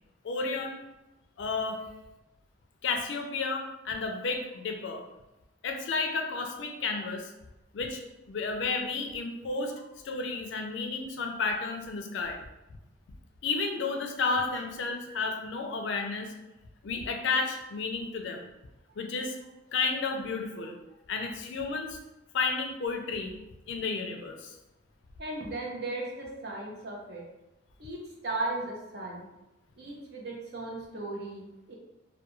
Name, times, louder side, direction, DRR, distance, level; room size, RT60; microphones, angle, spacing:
voice 1, 0.2-0.8 1.4-1.8 2.8-5.0 5.6-7.3 7.7-8.0 8.3-9.7 10.0-12.4 13.4-16.3 16.8-18.5 19.0-19.4 19.7-20.8 21.1-22.0 22.3-23.3 23.7-24.6, left 4 dB, 65° left, 4 dB, 0.4 m, -32 dB
voice 2, 25.2-27.2 27.8-29.2 29.8-31.7, right 2 dB, 55° right, -1 dB, 0.6 m, -36 dB
2.3 x 2.2 x 2.9 m, 0.96 s
head